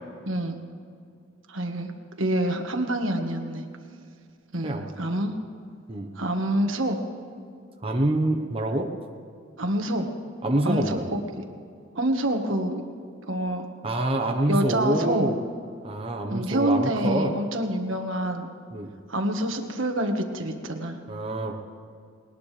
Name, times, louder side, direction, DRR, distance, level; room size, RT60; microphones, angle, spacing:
voice 1, 0.3-0.6 1.5-1.9 2.2-3.6 4.5-5.3 6.1-7.0 9.6-10.1 10.6-11.2 11.9-12.8 13.2-13.7 14.5-15.3 16.3-18.5 19.1-21.0, right 1 dB, 80° right, 4 dB, 1.5 m, -26 dB
voice 2, 7.8-8.9 10.4-11.1 13.8-15.3 15.8-17.3 18.7-18.9 21.1-21.6, right 1 dB, 30° right, 2 dB, 1.1 m, -26 dB
20.0 x 19.5 x 3.4 m, 2.3 s
head